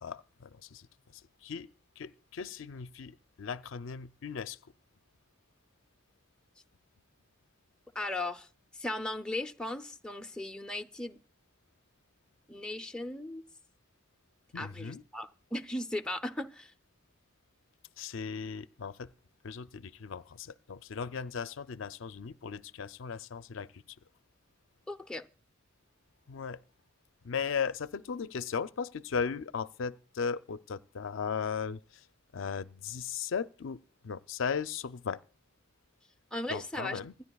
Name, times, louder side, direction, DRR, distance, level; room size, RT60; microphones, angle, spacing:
voice 1, 0.0-0.9 1.1-1.7 2.0-4.6 14.5-15.0 18.0-19.1 19.4-23.8 26.3-26.6 27.2-32.0 32.3-35.2 36.5-37.1, left 6 dB, 70° left, 0.5 m, -37 dB
voice 2, 7.9-8.5 8.7-11.2 12.5-13.4 14.5-16.7 24.9-25.2 36.3-37.0, left 1 dB, 5° left, 0.6 m, -37 dB
26.0 x 10.5 x 2.3 m
head